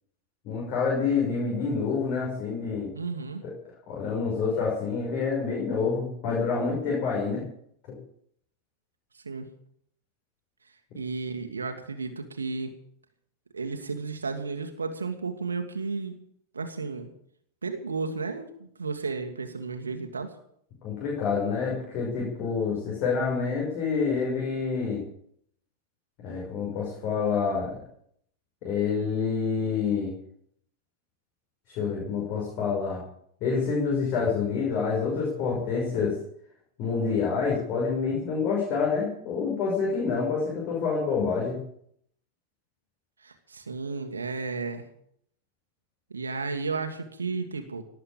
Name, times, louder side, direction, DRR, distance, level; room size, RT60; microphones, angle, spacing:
voice 1, 0.4-2.9 3.9-7.4 20.8-25.0 26.2-27.8 28.6-30.1 31.7-33.0 33.4-36.2 36.8-41.6, left 5 dB, 40° left, -4 dB, 6.2 m, -27 dB
voice 2, 2.9-3.4 9.1-9.5 10.9-12.7 13.5-16.2 16.5-17.1 17.6-20.3 43.2-44.9 46.1-47.8, right 4 dB, 75° right, 5 dB, 1.7 m, -33 dB
18.5 x 7.8 x 8.9 m, 0.67 s
figure-of-eight pair, 90°, 0 cm